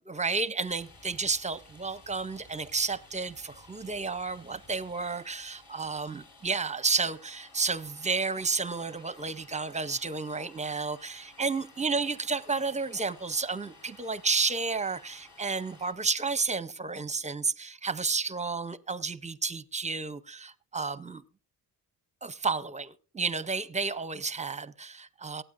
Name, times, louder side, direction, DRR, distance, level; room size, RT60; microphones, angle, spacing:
voice 1, 0.0-21.2 22.2-25.4, right 4 dB, 15° right, 0.5 m, -31 dB
Domestic sounds home sounds, 0.6-15.9, left 2 dB, 55° left, 4.3 m, -55 dB
23.5 x 9.0 x 2.5 m
cardioid pair, 105°, 41 cm